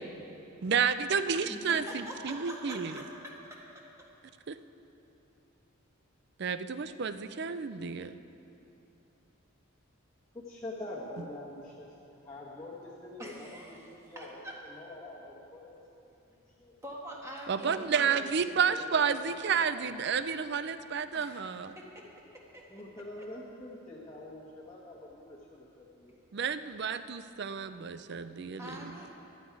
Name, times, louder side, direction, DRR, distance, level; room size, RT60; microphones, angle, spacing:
voice 1, 0.6-2.9 4.5-4.6 6.4-8.2 17.5-21.8 26.3-28.9, right 6 dB, 55° right, 12 dB, 0.5 m, -31 dB
voice 2, 1.5-3.8 13.2-13.9 14.2-14.6 16.8-18.2 21.1-21.4 21.8-22.1 22.3-22.6 28.6-29.1, equal, 15° right, -3 dB, 1.7 m, -44 dB
voice 3, 10.3-14.4 14.6-15.8 16.6-16.7 17.6-19.2 19.4-20.1 22.7-26.2, left 1 dB, 15° left, -7 dB, 1.4 m, -46 dB
15.5 x 12.0 x 4.7 m, 2.9 s
head